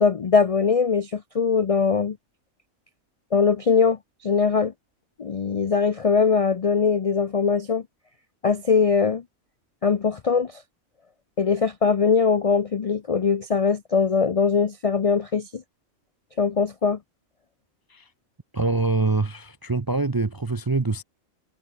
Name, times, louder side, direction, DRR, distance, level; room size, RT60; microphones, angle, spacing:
voice 1, 0.0-2.2 3.3-4.7 5.2-7.8 8.4-9.2 9.8-10.6 11.4-15.6 16.4-17.0, left 5 dB, 70° left, 0.3 m, -21 dB
voice 2, 18.5-21.0, right 3 dB, 35° right, 0.3 m, -24 dB
omnidirectional pair, 1.5 m